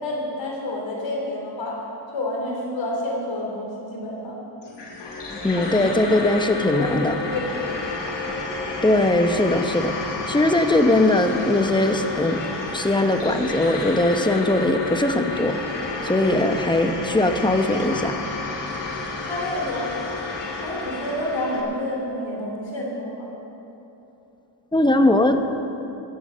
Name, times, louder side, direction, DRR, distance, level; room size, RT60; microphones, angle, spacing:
voice 1, 0.0-1.8 2.1-4.4 5.7-6.1 6.7-7.5 19.2-20.0 20.6-23.3, left 1 dB, 80° left, -2 dB, 3.5 m, -29 dB
sound 1, 4.6-21.6, left 3 dB, 65° left, 2.6 m, -30 dB
voice 2, 5.4-7.2 8.8-12.4 12.7-15.6 16.0-18.2 24.7-25.4, left 1 dB, 10° left, 6 dB, 1.1 m, -20 dB
15.0 x 11.5 x 5.7 m, 3.0 s
cardioid pair, 70°, 44 cm